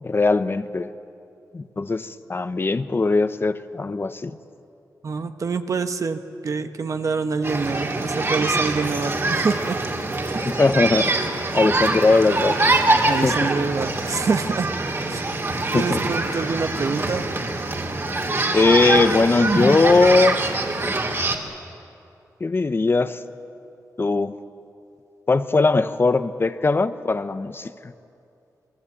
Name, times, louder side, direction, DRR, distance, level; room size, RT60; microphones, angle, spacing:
voice 1, 0.0-0.9 1.5-4.4 10.3-11.1 11.5-12.7 13.2-13.5 15.7-16.0 18.5-20.4 20.8-21.0 22.4-23.2 24.0-24.3 25.3-27.9, left 3 dB, 35° left, 11 dB, 0.9 m, -20 dB
voice 2, 5.0-9.8 10.2-10.4 13.1-14.7 15.1-15.3 15.7-17.2, right 4 dB, 55° right, 8 dB, 1.3 m, -26 dB
sound 1, 7.4-21.4, right 2 dB, 40° right, 3.0 m, -24 dB
27.0 x 21.5 x 8.6 m, 2.6 s
wide cardioid pair, 95°, 6 cm